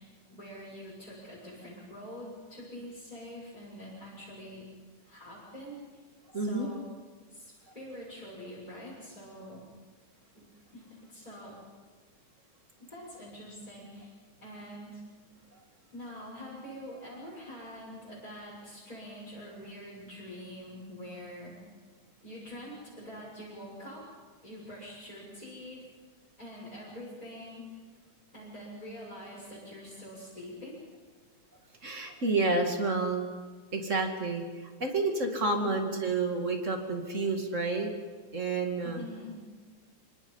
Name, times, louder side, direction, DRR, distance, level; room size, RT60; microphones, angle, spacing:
voice 1, 0.0-4.7 5.1-6.0 6.3-6.9 7.3-9.6 10.3-10.4 10.7-11.6 12.9-14.1 14.4-15.0 15.9-21.6 22.2-24.1 24.4-25.9 26.4-27.8 28.3-30.8 35.5-35.8 38.8-39.4, equal, 10° left, -7 dB, 6.6 m, -45 dB
voice 2, 6.3-6.7 31.8-33.3 33.7-37.9 38.3-39.0, right 3 dB, 25° right, 3 dB, 2.1 m, -30 dB
26.5 x 25.0 x 5.7 m, 1.5 s
omnidirectional pair, 3.9 m